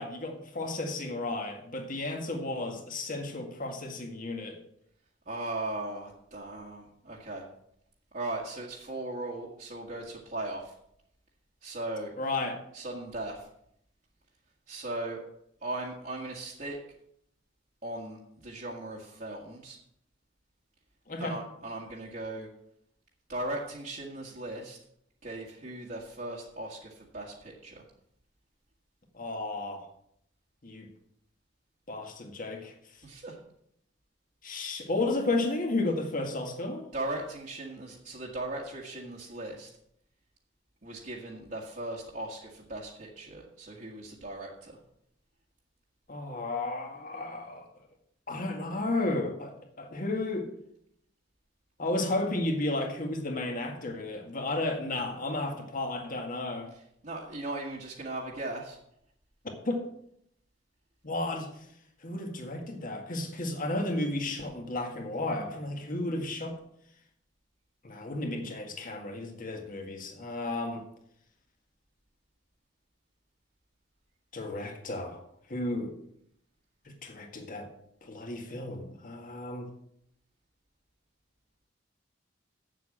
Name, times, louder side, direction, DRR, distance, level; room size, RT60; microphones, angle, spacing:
voice 1, 0.0-4.6 12.2-12.6 21.1-21.4 29.1-29.8 30.6-30.9 31.9-32.7 34.4-36.8 46.1-47.7 48.3-50.5 51.8-56.7 59.7-59.9 61.0-61.5 62.0-66.5 67.8-70.8 74.3-75.2 75.5-75.9 77.0-77.7 78.0-79.7, left 2 dB, 45° left, 3 dB, 1.9 m, -33 dB
voice 2, 5.3-7.4 8.1-10.7 11.6-12.1 12.7-13.5 14.7-15.2 15.6-16.8 17.8-19.8 21.2-22.5 23.3-24.8 25.2-27.8 33.0-33.4 36.9-39.7 40.8-44.8 56.7-58.8, right 2 dB, 45° right, -4 dB, 1.7 m, -38 dB
8.3 x 7.5 x 7.4 m, 0.73 s
head